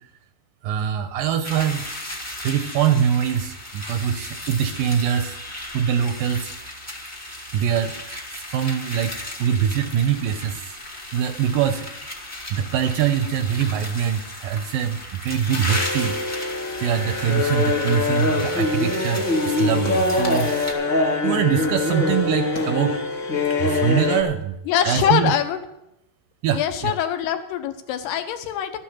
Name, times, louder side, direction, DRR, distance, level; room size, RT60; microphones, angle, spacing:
voice 1, 0.6-1.9 2.4-5.4 5.7-6.7 7.5-10.8 11.1-11.9 12.2-16.4 16.8-21.0 21.2-23.0 23.6-24.6 24.9-25.3 26.4-27.0, right 9 dB, 80° right, 8 dB, 2.1 m, -23 dB
sound 1, 1.4-20.7, left 1 dB, 25° left, 0.3 m, -35 dB
sound 2, 15.7-24.2, left 3 dB, 40° left, 2.0 m, -23 dB
voice 2, 24.7-25.6 26.5-28.8, left 9 dB, 90° left, 7 dB, 3.1 m, -23 dB
13.0 x 8.5 x 7.2 m, 0.84 s
omnidirectional pair, 4.5 m